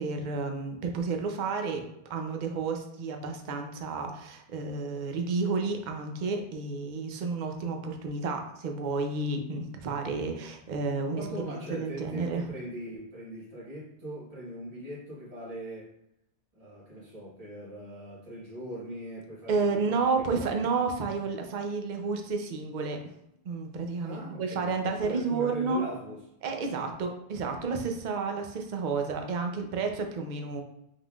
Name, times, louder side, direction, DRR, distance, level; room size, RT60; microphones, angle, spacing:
voice 1, 0.0-1.8 2.1-11.2 11.5-12.5 19.5-23.0 23.4-25.8 26.4-30.6, right 4 dB, 50° right, 4 dB, 0.7 m, -31 dB
voice 2, 11.0-15.9 16.5-20.7 24.0-26.2, equal, 35° right, -6 dB, 1.5 m, -41 dB
5.2 x 3.7 x 2.4 m, 0.78 s
omnidirectional pair, 1.2 m